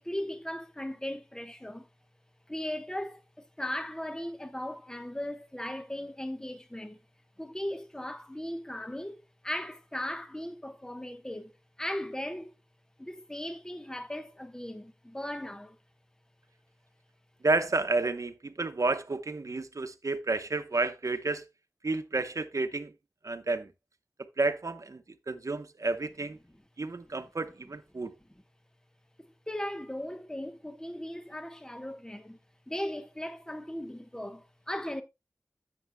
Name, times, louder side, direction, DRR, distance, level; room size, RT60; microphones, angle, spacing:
voice 1, 0.0-1.9 2.5-7.0 7.4-12.5 13.0-15.8 29.2-32.4 32.7-35.0, left 1 dB, 10° left, 1.0 m, -38 dB
voice 2, 17.4-21.4 21.8-22.9 23.2-23.7 24.4-26.4 26.8-28.1, right 3 dB, 70° right, 0.8 m, -31 dB
11.0 x 8.5 x 2.2 m
wide cardioid pair, 65°, 6 cm